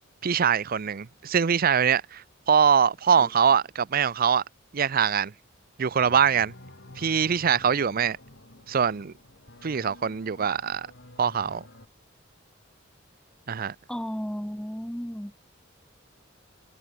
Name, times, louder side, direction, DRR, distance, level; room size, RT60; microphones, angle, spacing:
voice 1, 0.2-4.4 4.7-5.3 5.8-6.5 7.0-8.2 8.7-9.1 9.6-10.9 11.2-11.6 13.5-13.7, right 7 dB, 50° right, 0.5 m, -23 dB
sound 1, 6.0-11.9, left 1 dB, 60° left, 3.6 m, -50 dB
voice 2, 13.9-15.3, equal, 5° left, 1.2 m, -33 dB
head